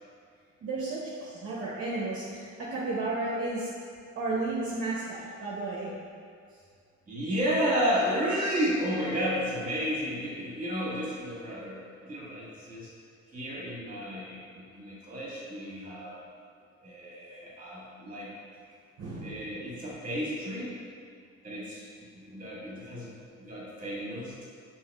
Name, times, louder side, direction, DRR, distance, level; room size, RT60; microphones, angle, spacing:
voice 1, 0.6-3.7 4.2-5.9 10.8-10.9 19.0-19.5, right 2 dB, 50° right, -6 dB, 0.7 m, -33 dB
voice 2, 7.1-12.9 13.3-16.2 16.8-18.3 19.2-20.7 21.4-24.4, equal, 25° right, -6 dB, 1.5 m, -32 dB
5.4 x 3.0 x 2.3 m, 2.2 s
cardioid pair, 90°, 30 cm